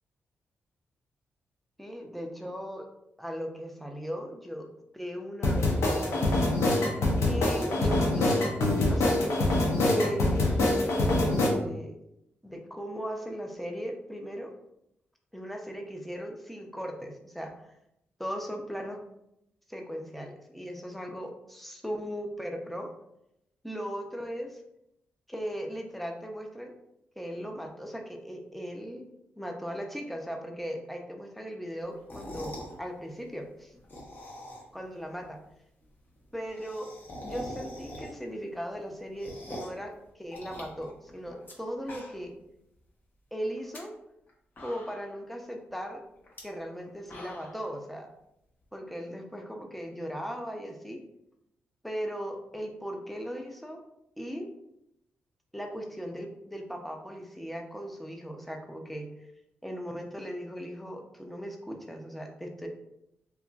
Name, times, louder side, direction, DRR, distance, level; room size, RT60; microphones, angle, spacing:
voice 1, 1.8-2.9 3.2-4.7 4.9-6.3 7.3-8.4 8.9-9.5 9.8-12.0 12.4-14.5 15.3-17.5 18.2-19.0 19.7-22.9 23.6-24.6 25.3-26.7 27.2-29.1 29.4-33.7 34.7-35.4 36.3-36.9 37.2-42.3 43.3-43.9 44.6-46.0 46.4-48.1 48.7-51.0 51.8-53.8 54.2-54.5 55.5-59.1 59.6-62.7, equal, 5° left, 2 dB, 0.5 m, -37 dB
sound 1, 5.4-11.5, left 2 dB, 80° left, 0.6 m, -25 dB
sound 2, 32.0-32.7 33.7-34.8 35.2-35.3 35.5-35.6 35.8-35.9 36.2-38.4 38.7-39.8 40.3-41.5 41.8-42.4 42.7-42.8 43.5-43.8 44.3-44.4 44.6-45.2 46.2-46.4 46.8-47.6, left 1 dB, 45° left, 0.8 m, -43 dB
2.9 x 2.4 x 2.3 m, 0.84 s
cardioid pair, 65°, 5 cm